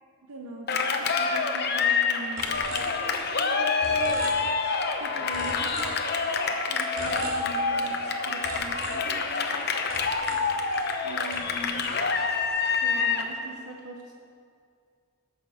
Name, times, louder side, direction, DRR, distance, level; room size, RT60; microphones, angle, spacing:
voice 1, 0.3-2.5 2.9-4.2 5.0-9.8 11.0-11.8 12.8-14.1, right 2 dB, 85° right, 1 dB, 1.0 m, -42 dB
Cheering, 0.7-13.3, left 4 dB, 45° left, 0.8 m, -27 dB
sound 1, 2.4-3.5 3.8-4.9 5.3-6.5 6.9-8.1 8.4-11.0 11.3-12.5, right 2 dB, 65° right, 2.5 m, -40 dB
17.5 x 6.9 x 5.0 m, 2.3 s
head